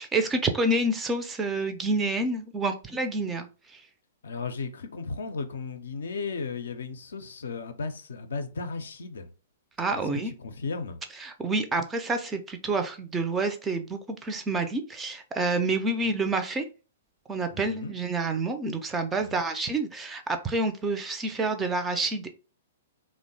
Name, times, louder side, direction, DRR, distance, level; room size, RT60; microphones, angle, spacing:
voice 1, 0.0-3.8 9.8-10.3 11.2-16.7 17.3-22.3, right 2 dB, 15° right, 0.4 m, -28 dB
voice 2, 4.2-9.3 9.9-11.0 17.5-17.9 19.2-19.4, left 4 dB, 65° left, 0.4 m, -35 dB
2.8 x 2.0 x 2.6 m
figure-of-eight pair, 110°, 0 cm